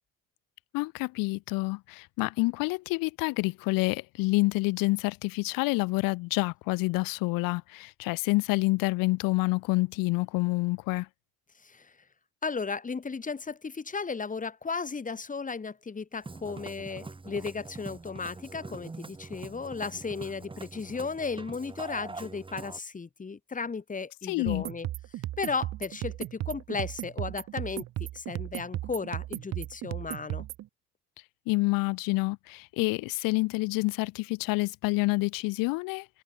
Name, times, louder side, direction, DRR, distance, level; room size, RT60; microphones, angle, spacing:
voice 1, 0.7-11.1 24.3-24.6 31.5-36.1, left 24 dB, 80° left, 0.6 m, -28 dB
voice 2, 11.6-11.9 12.4-24.9 25.4-30.5, left 4 dB, 25° left, 3.4 m, -35 dB
Musical instrument, 16.1-22.8, right 3 dB, 15° right, 2.7 m, -43 dB
sound 1, 24.5-30.7, right 14 dB, 50° right, 0.7 m, -36 dB
cardioid pair, 110°, 34 cm